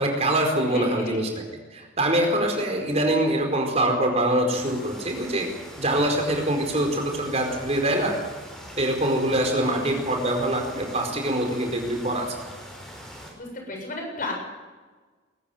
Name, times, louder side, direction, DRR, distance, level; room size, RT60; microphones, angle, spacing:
voice 1, 0.0-1.3 1.7-5.5 5.8-8.2 8.8-12.3, right 1 dB, 35° right, 3 dB, 4.6 m, -24 dB
voice 2, 0.6-1.4 9.6-10.0 13.4-14.3, left 2 dB, 45° left, 1 dB, 7.7 m, -34 dB
sound 1, 4.5-13.3, equal, 5° left, 5.3 m, -42 dB
22.0 x 14.0 x 9.2 m, 1.4 s
head